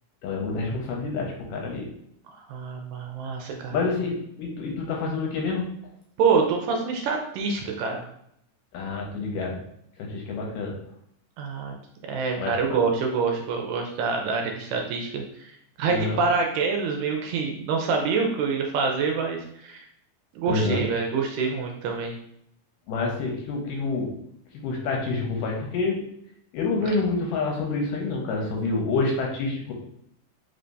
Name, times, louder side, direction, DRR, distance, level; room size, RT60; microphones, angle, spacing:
voice 1, 0.2-1.9 3.7-5.6 8.7-9.6 10.0-10.7 12.4-12.8 15.9-16.2 20.5-20.8 22.9-24.1 24.6-26.0 26.5-29.7, left 3 dB, 75° left, -1 dB, 2.3 m, -27 dB
voice 2, 2.5-3.8 6.2-8.1 11.4-11.7 12.1-19.9 20.3-22.2 26.8-26.9, right 5 dB, 80° right, 2 dB, 2.0 m, -26 dB
5.1 x 3.3 x 2.6 m, 0.73 s
omnidirectional pair, 4.0 m